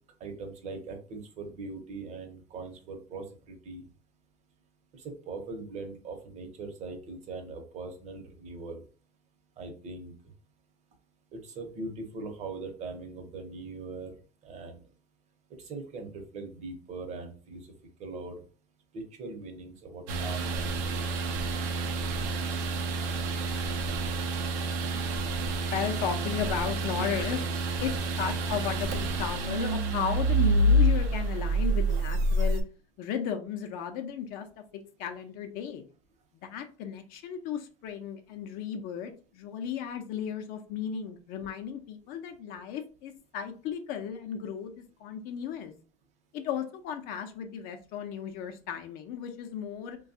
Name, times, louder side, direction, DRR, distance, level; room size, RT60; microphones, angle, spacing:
voice 1, 0.2-3.9 4.9-8.8 9.6-10.1 11.3-14.1 14.4-14.8 15.6-17.7 18.0-18.4 18.9-21.3, right 3 dB, 40° right, 4 dB, 0.8 m, -41 dB
sound 1, 20.1-32.6, right 1 dB, 70° right, 0.6 m, -28 dB
voice 2, 25.7-27.5 27.8-32.6 33.0-34.5 34.7-35.8 36.3-45.7 46.3-50.0, left 8 dB, 60° left, 6 dB, 0.5 m, -35 dB
3.1 x 2.3 x 2.7 m, 0.37 s
cardioid pair, 130°, 17 cm